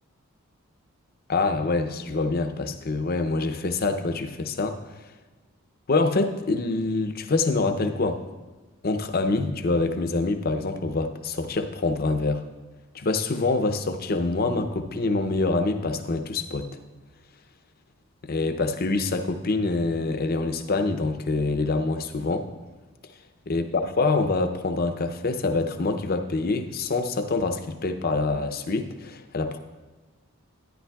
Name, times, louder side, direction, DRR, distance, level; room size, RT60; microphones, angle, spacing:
voice 1, 1.3-4.8 5.9-8.2 8.8-12.4 12.9-16.7 18.2-22.5 23.5-29.6, left 3 dB, 45° left, 7 dB, 0.6 m, -25 dB
12.5 x 9.8 x 2.3 m, 1.3 s
head